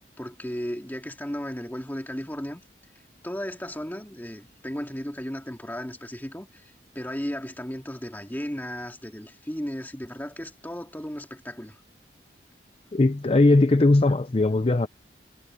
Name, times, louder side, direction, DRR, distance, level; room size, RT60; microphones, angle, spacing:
voice 1, 0.2-2.6 3.2-11.8, equal, 10° left, 2.3 m, -35 dB
voice 2, 12.9-14.9, left 2 dB, 35° left, 0.5 m, -19 dB
head